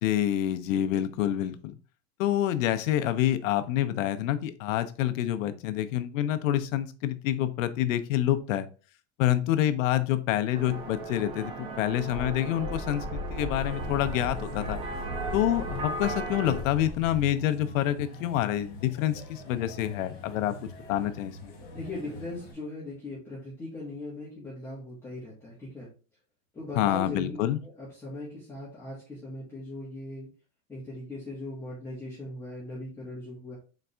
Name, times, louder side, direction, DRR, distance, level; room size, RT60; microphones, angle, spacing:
voice 1, 0.0-1.7 2.2-8.7 9.2-14.8 15.3-21.5 26.7-27.6, left 12 dB, 70° left, 11 dB, 0.7 m, -27 dB
sound 1, 10.5-16.6, right 3 dB, 15° right, 0.3 m, -37 dB
Wind, 12.5-17.3, left 1 dB, 35° right, 1.4 m, -38 dB
sound 2, 13.6-22.5, left 1 dB, 35° left, 2.0 m, -44 dB
voice 2, 21.7-25.9 26.5-27.4 27.6-30.3 30.7-33.5, left 2 dB, 5° left, -9 dB, 1.2 m, -39 dB
4.1 x 3.4 x 3.2 m, 0.36 s
supercardioid pair, 160°, 40 cm